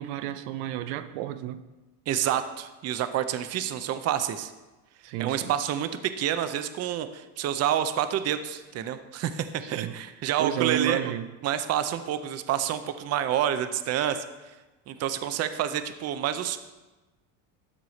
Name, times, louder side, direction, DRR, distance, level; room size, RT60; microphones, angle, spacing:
voice 1, 0.0-1.7 5.0-5.5 9.6-9.9 10.4-11.3, right 12 dB, 90° right, 0.6 m, -31 dB
voice 2, 2.1-4.5 5.2-11.1 11.4-14.2 14.9-16.6, right 10 dB, 40° right, 0.6 m, -28 dB
12.5 x 4.7 x 4.1 m
cardioid pair, 125°, 41 cm